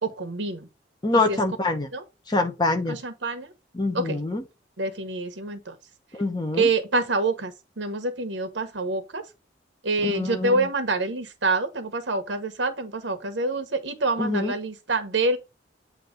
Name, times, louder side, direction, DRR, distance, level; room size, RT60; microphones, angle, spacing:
voice 1, 0.0-0.7 1.3-1.4 1.9-2.0 2.9-3.5 3.9-4.2 4.8-5.8 6.5-9.2 9.8-15.4, right 3 dB, 85° right, 1.2 m, -26 dB
voice 2, 1.0-1.9 2.3-3.0 3.7-4.4 6.1-6.7 10.0-10.7 14.2-14.5, left 2 dB, 25° left, 1.2 m, -25 dB
8.4 x 2.9 x 5.2 m
head